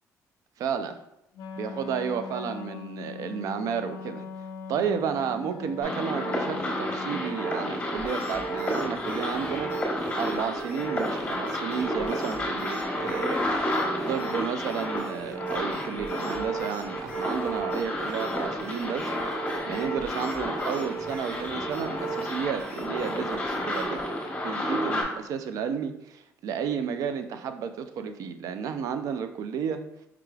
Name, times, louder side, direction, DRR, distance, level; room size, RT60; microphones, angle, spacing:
voice 1, 0.6-1.0 1.6-4.2 4.7-9.7 10.1-13.4 14.1-24.0 24.4-29.8, right 7 dB, 70° right, 9 dB, 0.4 m, -32 dB
Wind instrument woodwind instrument, 1.3-7.4, left 5 dB, 80° left, 0.4 m, -40 dB
sound 1, 5.8-25.0, equal, 20° left, 1.0 m, -30 dB
sound 2, 8.0-24.1, left 1 dB, 20° right, 1.0 m, -46 dB
4.8 x 3.1 x 2.3 m, 0.82 s
cardioid pair, 115°, 6 cm